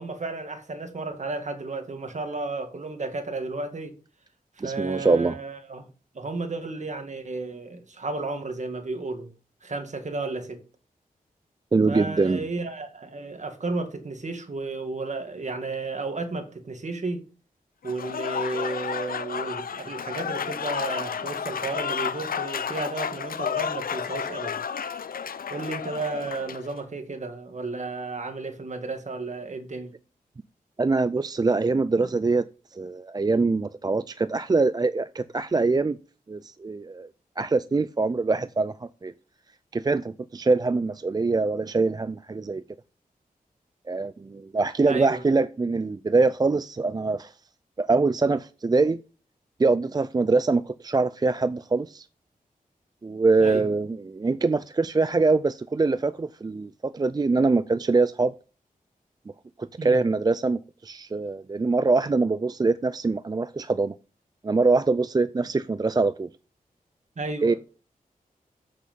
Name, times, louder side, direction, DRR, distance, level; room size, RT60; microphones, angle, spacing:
voice 1, 0.0-4.0 4.6-5.9 6.1-9.3 9.6-10.6 11.9-17.3 17.8-24.6 25.5-29.9 44.9-45.2 53.4-53.7 59.8-60.0 67.2-67.6, right 3 dB, 50° right, 1.9 m, -33 dB
voice 2, 4.6-5.4 11.7-12.4 30.8-32.4 32.7-36.0 36.3-37.1 37.4-39.1 39.7-42.6 43.9-47.3 47.8-49.0 49.6-52.1 53.0-58.3 59.6-63.9 64.4-66.3 67.4-67.5, right 3 dB, 25° right, 0.4 m, -24 dB
Applause / Crowd, 17.8-26.7, left 7 dB, 75° left, 0.6 m, -31 dB
7.7 x 6.5 x 5.2 m
cardioid pair, 60°, 15 cm